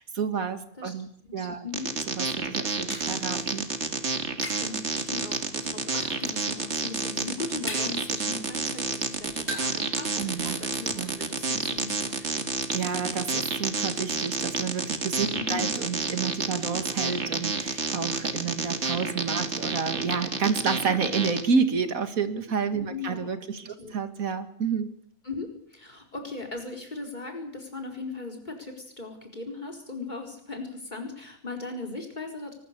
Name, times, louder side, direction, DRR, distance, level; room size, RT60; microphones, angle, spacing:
voice 1, 0.0-1.6 2.2-3.6 10.2-10.6 11.0-11.1 12.7-24.9, right 6 dB, 85° right, 9 dB, 2.3 m, -30 dB
voice 2, 1.2-1.9 4.6-12.6 15.3-15.7 22.9-23.3 23.6-23.9 25.2-32.6, left 3 dB, 30° left, 2 dB, 4.6 m, -38 dB
sound 1, 1.7-21.4, right 4 dB, 55° right, 2.3 m, -29 dB
sound 2, 2.2-4.7 5.1-5.6 6.0-6.5 6.8-8.1 8.4-9.9 10.2-10.3 10.5-11.1, equal, 10° left, 6.0 m, -41 dB
23.5 x 20.0 x 6.8 m, 0.63 s
omnidirectional pair, 1.4 m